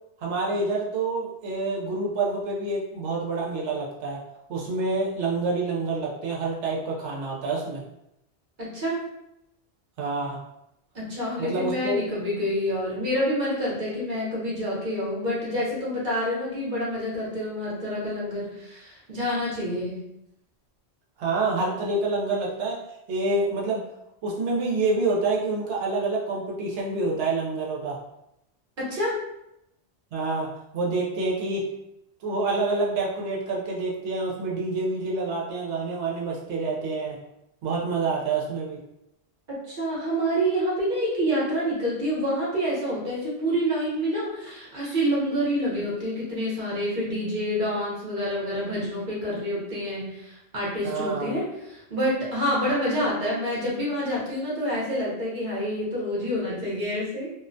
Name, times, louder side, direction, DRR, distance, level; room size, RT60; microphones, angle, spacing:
voice 1, 0.2-4.2 4.5-7.8 10.0-10.4 11.4-12.0 21.2-22.8 23.1-23.8 24.2-28.0 30.1-30.5 30.7-31.6 32.2-37.2 37.6-38.8 50.8-51.3, right 3 dB, 85° right, -3 dB, 0.9 m, -27 dB
voice 2, 8.6-9.0 10.9-20.0 28.8-29.2 39.5-57.3, equal, 50° right, -6 dB, 0.9 m, -27 dB
2.4 x 2.1 x 2.5 m, 0.84 s
omnidirectional pair, 1.2 m